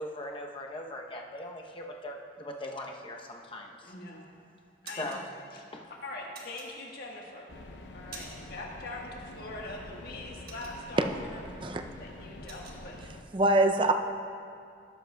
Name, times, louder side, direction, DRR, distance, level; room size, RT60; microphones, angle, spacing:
voice 1, 0.0-3.9 5.0-5.2 5.7-5.9, left 1 dB, 30° left, 1 dB, 0.8 m, -40 dB
voice 2, 3.8-4.2 4.8-5.3 5.5-5.6 6.0-7.5 7.9-11.4 12.0-13.0, left 2 dB, 60° left, -1 dB, 1.4 m, -42 dB
Metallic Chunk, 3.8-4.2 4.6-5.2 6.3-7.2 7.6-8.6 8.9-9.1 9.5-11.2 11.6-11.8 12.0-12.8, right 3 dB, 60° right, 1.4 m, -47 dB
sound 1, 7.5-13.2, left 2 dB, 85° left, 0.7 m, -46 dB
voice 3, 13.3-13.9, right 2 dB, 30° right, 6 dB, 0.5 m, -23 dB
17.0 x 7.7 x 2.3 m, 2.3 s
head